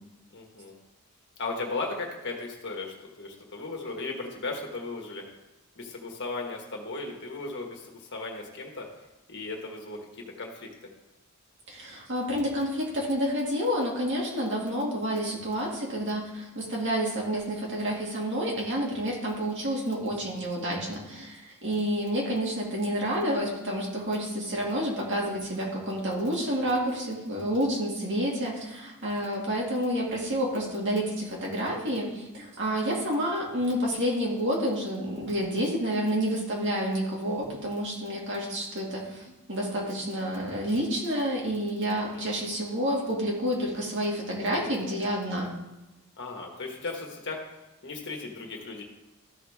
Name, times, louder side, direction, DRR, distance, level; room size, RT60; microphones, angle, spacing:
voice 1, 0.3-0.7 1.4-5.2 5.7-8.9 9.3-10.7 22.2-22.3 42.1-42.3 46.2-47.4 47.8-48.8, left 3 dB, 55° left, 1 dB, 1.5 m, -36 dB
voice 2, 11.7-45.6, equal, 55° right, -3 dB, 2.2 m, -29 dB
13.5 x 4.8 x 3.6 m, 1.0 s
head